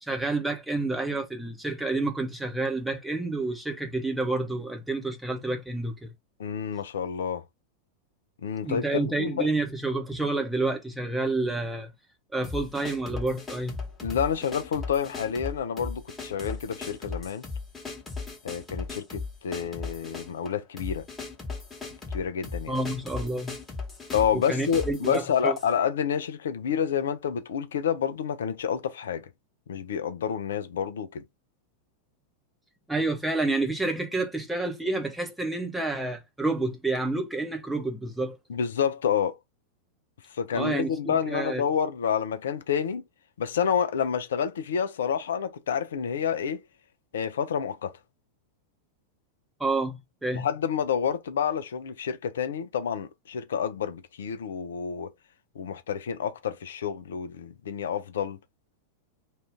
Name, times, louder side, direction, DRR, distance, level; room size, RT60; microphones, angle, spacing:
voice 1, 0.0-6.1 8.6-11.9 12.3-13.8 22.7-23.5 24.3-25.6 32.9-38.4 40.5-41.6 49.6-50.5, right 2 dB, 5° right, 0.8 m, -29 dB
voice 2, 6.4-7.4 8.4-9.5 14.0-17.4 18.4-21.0 22.1-22.8 24.1-29.3 29.7-31.2 38.5-39.4 40.3-43.0 43.4-46.6 47.1-47.9 50.3-55.1 55.6-58.4, left 7 dB, 65° left, 0.4 m, -29 dB
sound 1, 12.4-25.7, left 4 dB, 15° left, 1.2 m, -37 dB
2.6 x 2.4 x 3.4 m
figure-of-eight pair, 90°, 0 cm